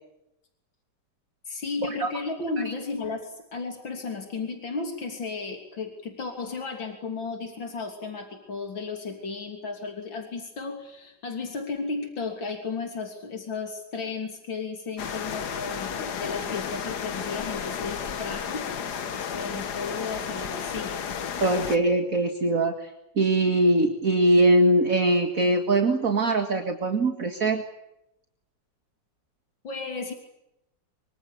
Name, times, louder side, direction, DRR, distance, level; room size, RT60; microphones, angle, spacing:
voice 1, 1.5-18.7 19.3-21.0 29.6-30.1, left 4 dB, 85° left, 4 dB, 3.8 m, -34 dB
sound 1, 15.0-21.8, left 7 dB, 60° left, 1.8 m, -33 dB
voice 2, 21.4-27.6, right 2 dB, 45° right, 5 dB, 2.4 m, -22 dB
25.0 x 25.0 x 8.5 m, 0.86 s
omnidirectional pair, 2.0 m